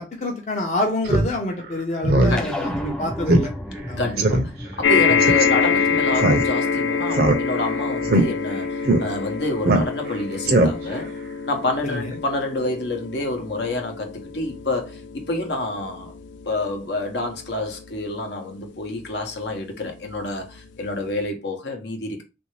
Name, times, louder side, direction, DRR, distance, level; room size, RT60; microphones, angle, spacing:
voice 1, 0.0-3.5 3.9-4.1 11.9-12.2, left 1 dB, 40° left, 0.6 m, -27 dB
Speech synthesizer, 1.1-1.3 1.6-1.7 2.0-2.4 2.7-2.8 3.3-3.5 3.8-3.9 4.2-4.4 5.2-5.5 6.2-6.7 7.1-7.7 8.0-8.2 8.9-9.0 9.6-10.1 10.5-11.0, right 2 dB, 55° right, 0.5 m, -18 dB
voice 2, 2.3-2.7 4.0-11.1 11.5-16.1 16.4-22.2, left 2 dB, 70° left, 0.8 m, -28 dB
sound 1, 2.4-7.1, equal, 5° left, 0.4 m, -34 dB
sound 2, 4.8-19.4 20.1-20.2 20.5-20.6, left 6 dB, 85° left, 0.4 m, -26 dB
3.2 x 2.6 x 3.1 m
head